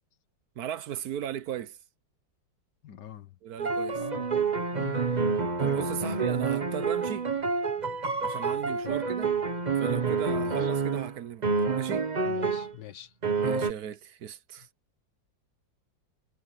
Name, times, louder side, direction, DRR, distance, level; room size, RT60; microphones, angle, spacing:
voice 1, 0.6-1.8 3.4-4.3 5.6-7.3 8.2-9.3 9.8-12.1 13.4-14.7, right 10 dB, 60° right, 1.2 m, -36 dB
voice 2, 2.8-3.3 3.9-4.4 4.7-5.0 5.7-5.8 6.0-6.2 8.8-9.0 10.3-10.6 12.2-13.1, left 12 dB, 65° left, 1.6 m, -43 dB
sound 1, 3.6-11.2 11.4-12.7 13.2-13.7, right 4 dB, 25° right, 1.1 m, -28 dB
omnidirectional pair, 2.1 m